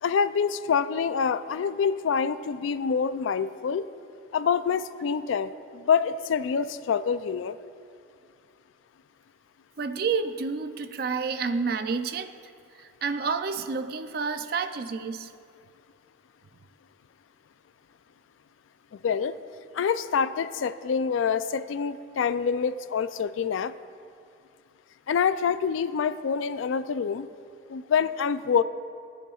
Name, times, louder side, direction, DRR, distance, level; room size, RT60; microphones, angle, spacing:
voice 1, 0.0-3.8 4.3-7.6 18.9-19.4 19.7-23.7 25.1-27.3 27.7-28.6, left 6 dB, 80° left, 13 dB, 0.3 m, -26 dB
voice 2, 9.8-12.3 12.8-15.3, right 5 dB, 50° right, 10 dB, 0.4 m, -29 dB
18.5 x 7.0 x 2.4 m, 2.3 s
head